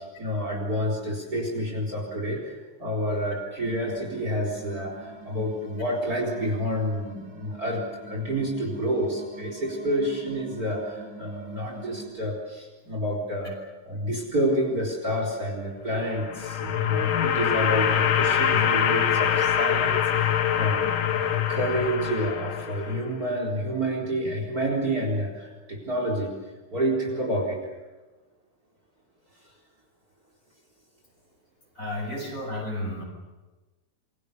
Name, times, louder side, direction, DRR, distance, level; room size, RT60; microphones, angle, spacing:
voice 1, 0.0-13.5 13.8-20.8 21.1-26.3 26.7-27.6 32.0-32.1, equal, 30° right, 1 dB, 4.6 m, -29 dB
sound 1, 3.6-12.1, right 3 dB, 80° right, 5.5 m, -44 dB
sound 2, 16.0-23.1, left 9 dB, 55° left, 1.6 m, -24 dB
voice 2, 31.8-33.0, left 1 dB, 25° left, 2 dB, 6.2 m, -32 dB
28.5 x 23.5 x 7.0 m, 1.2 s
omnidirectional pair, 3.5 m